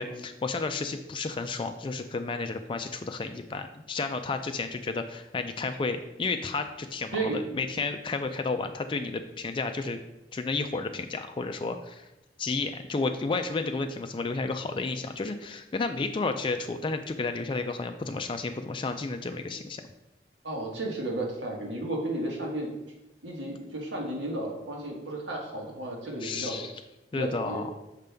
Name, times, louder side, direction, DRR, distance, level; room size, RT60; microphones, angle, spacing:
voice 1, 0.0-10.0 10.3-12.1 12.4-19.8 26.2-26.7 27.1-27.6, left 3 dB, 30° left, 7 dB, 0.3 m, -32 dB
voice 2, 20.4-22.7 23.2-26.6 27.1-27.6, right 1 dB, 90° right, 0 dB, 1.6 m, -33 dB
6.5 x 5.2 x 3.4 m, 0.98 s
head